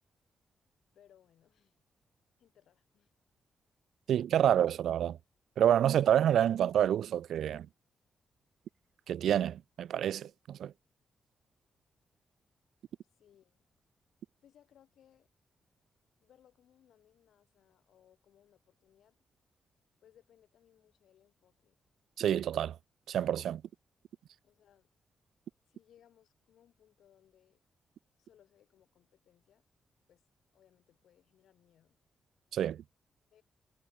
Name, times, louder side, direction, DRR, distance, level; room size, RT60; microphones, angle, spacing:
voice 1, 0.9-1.8 2.4-3.1 13.2-13.6 14.4-15.3 16.2-19.1 20.0-21.8 24.4-24.9 25.6-27.6 28.2-29.6 30.1-30.3 30.5-32.0 33.3-33.4, left 10 dB, 75° left, 7.8 m, -66 dB
voice 2, 4.1-5.2 5.6-7.7 9.1-10.7 22.2-22.8 23.1-23.6 32.5-32.8, right 10 dB, 75° right, 0.3 m, -28 dB
wide cardioid pair, 160°, 0 cm